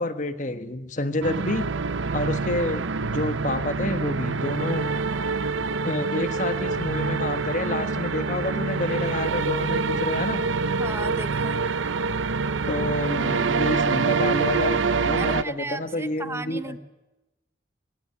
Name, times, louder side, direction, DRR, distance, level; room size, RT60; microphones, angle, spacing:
voice 1, 0.0-1.7 2.1-4.9 5.8-10.4 12.7-16.8, left 2 dB, 40° left, 10 dB, 1.3 m, -29 dB
sound 1, 1.2-15.4, right 4 dB, 85° right, 0.7 m, -26 dB
voice 2, 10.8-11.6 15.2-16.8, right 2 dB, 15° right, 12 dB, 0.9 m, -35 dB
20.5 x 16.5 x 9.7 m, 1.0 s
head